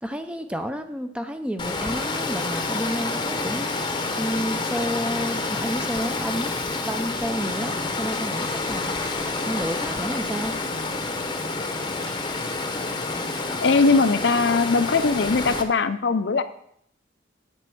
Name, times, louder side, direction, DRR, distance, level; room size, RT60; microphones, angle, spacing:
voice 1, 0.0-3.7 4.2-6.5 6.8-8.9 9.2-10.6, equal, 5° right, 7 dB, 0.6 m, -30 dB
Water, 1.6-15.6, left 3 dB, 25° left, 0.9 m, -28 dB
sound 1, 2.9-13.0, right 1 dB, 70° right, 2.3 m, -50 dB
voice 2, 13.6-16.4, left 4 dB, 60° left, 11 dB, 0.6 m, -20 dB
9.1 x 5.4 x 7.7 m, 0.71 s
head